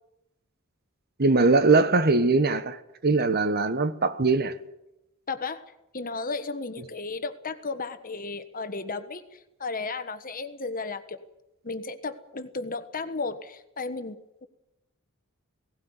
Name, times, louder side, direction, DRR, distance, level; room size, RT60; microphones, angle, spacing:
voice 1, 1.2-4.6, right 3 dB, 45° right, 1.2 m, -21 dB
voice 2, 5.3-5.6 5.9-11.2 11.6-14.5, left 3 dB, 40° left, 1.4 m, -34 dB
18.0 x 17.5 x 9.7 m
head